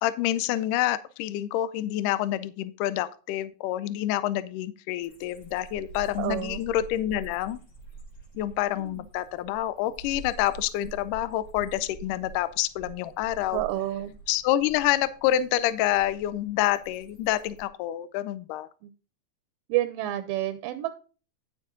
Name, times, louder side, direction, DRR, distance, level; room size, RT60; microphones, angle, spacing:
voice 1, 0.0-7.6 8.4-13.6 14.3-18.7, left 13 dB, 80° left, 15 dB, 2.1 m, -27 dB
sound 1, 5.0-17.6, right 3 dB, 35° left, 1.8 m, -46 dB
voice 2, 6.2-6.6 8.9-9.0 13.5-14.1 18.8-18.9 19.7-20.9, right 14 dB, 80° right, 9 dB, 2.3 m, -29 dB
9.5 x 7.3 x 3.7 m, 0.36 s
omnidirectional pair, 4.0 m